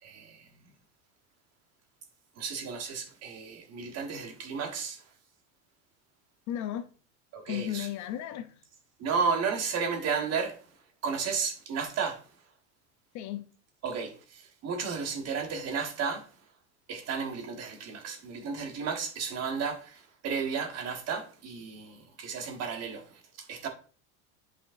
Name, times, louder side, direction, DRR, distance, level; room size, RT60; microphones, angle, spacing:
voice 1, 0.0-0.5 2.4-5.0 7.3-7.9 9.0-10.6 11.0-12.2 13.8-16.3 16.9-23.7, right 5 dB, 40° right, 1.3 m, -33 dB
voice 2, 6.5-6.9 7.5-8.5 13.1-13.5, left 12 dB, 50° left, 0.7 m, -34 dB
8.7 x 5.0 x 2.6 m
supercardioid pair, 130°, 39 cm